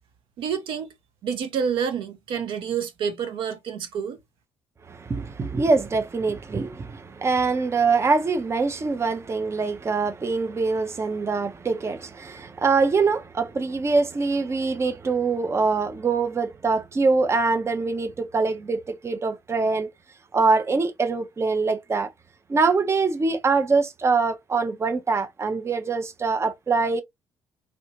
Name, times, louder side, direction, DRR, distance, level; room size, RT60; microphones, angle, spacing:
voice 1, 0.4-0.9 1.2-4.2, right 7 dB, 60° right, 0.8 m, -28 dB
voice 2, 4.9-19.9 20.3-22.1 22.5-27.0, right 4 dB, 30° right, 0.7 m, -24 dB
3.4 x 2.7 x 2.8 m
figure-of-eight pair, 45°, 10 cm